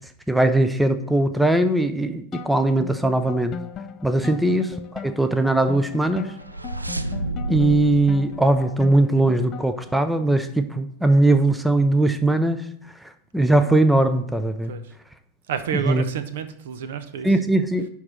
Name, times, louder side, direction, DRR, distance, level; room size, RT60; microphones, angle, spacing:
voice 1, 0.3-3.6 4.0-4.7 5.0-6.3 7.5-12.7 13.3-14.7 15.9-16.0 17.2-17.9, right 2 dB, 5° right, 10 dB, 0.6 m, -20 dB
sound 1, 2.3-10.0, left 6 dB, 30° left, 0.7 m, -38 dB
sound 2, 6.0-9.6, right 2 dB, 90° right, 0.4 m, -31 dB
voice 2, 15.5-17.4, right 8 dB, 60° right, 11 dB, 0.8 m, -30 dB
10.5 x 3.7 x 6.4 m, 0.70 s
figure-of-eight pair, 90°, 0 cm